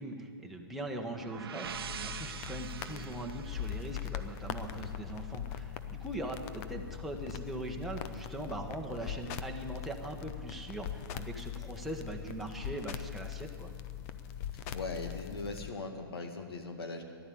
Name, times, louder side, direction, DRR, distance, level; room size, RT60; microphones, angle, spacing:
voice 1, 0.0-13.7, right 2 dB, ahead, 0 dB, 1.3 m, -41 dB
sound 1, 0.9-4.8, right 8 dB, 70° right, 0.7 m, -44 dB
sound 2, 1.6-15.7, left 10 dB, 40° left, 0.7 m, -41 dB
voice 2, 14.7-17.0, left 3 dB, 75° left, 5 dB, 2.0 m, -39 dB
14.5 x 11.5 x 8.6 m, 2.3 s
hypercardioid pair, 130°, 13 cm